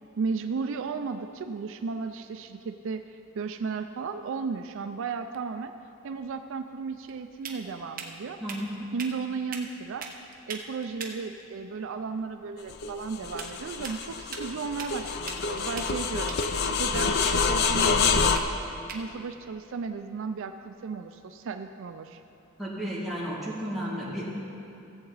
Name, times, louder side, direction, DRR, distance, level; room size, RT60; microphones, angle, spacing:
voice 1, 0.2-5.7 6.0-8.4 8.9-10.1 10.5-16.4 16.7-18.2 18.9-22.2, right 5 dB, 65° right, 8 dB, 0.4 m, -34 dB
sound 1, 6.2-20.9, right 5 dB, 40° right, 0.9 m, -44 dB
voice 2, 8.4-8.9 22.6-24.3, equal, ahead, -8 dB, 2.1 m, -33 dB
sound 2, 12.7-18.4, left 5 dB, 50° left, 0.5 m, -27 dB
16.0 x 7.7 x 4.0 m, 2.7 s
head